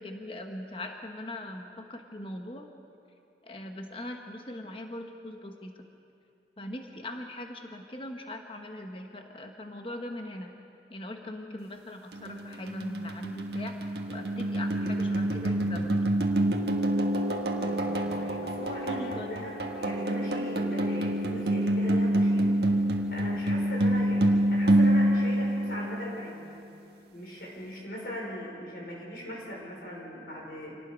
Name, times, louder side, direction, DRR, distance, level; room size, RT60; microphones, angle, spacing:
voice 1, 0.0-2.7 3.4-5.8 6.6-10.5 10.9-13.8 14.1-16.0 18.9-19.3, left 1 dB, 30° left, 4 dB, 1.2 m, -40 dB
sound 1, 12.1-26.3, right 1 dB, 70° right, 1.5 m, -27 dB
voice 2, 17.5-22.6 23.1-26.5 27.1-30.8, equal, 60° left, -3 dB, 5.7 m, -40 dB
27.0 x 18.5 x 5.3 m, 2.6 s
head